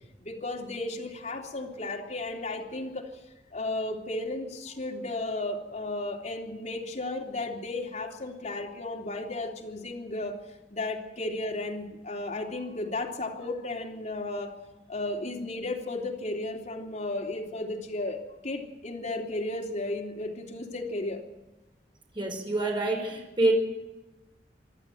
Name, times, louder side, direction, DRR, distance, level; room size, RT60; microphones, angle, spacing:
voice 1, 0.2-3.1 3.5-10.3 10.7-14.5 14.9-21.2, left 2 dB, 45° left, 0 dB, 3.2 m, -34 dB
voice 2, 22.1-23.5, right 2 dB, 30° right, 1 dB, 4.7 m, -26 dB
25.5 x 12.0 x 9.2 m, 1.0 s
head